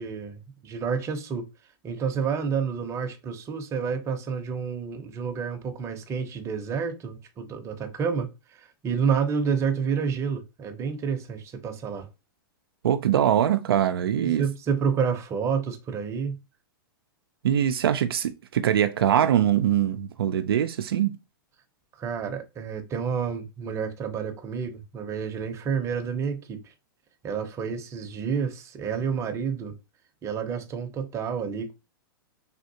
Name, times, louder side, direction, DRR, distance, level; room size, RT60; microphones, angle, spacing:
voice 1, 0.0-1.4 1.8-12.1 14.2-16.4 22.0-26.7 27.2-29.8 30.2-31.7, right 6 dB, 25° right, 0.7 m, -29 dB
voice 2, 12.8-14.4 17.4-21.2, right 10 dB, 85° right, 0.4 m, -23 dB
3.5 x 2.4 x 2.7 m
hypercardioid pair, 125°, 12 cm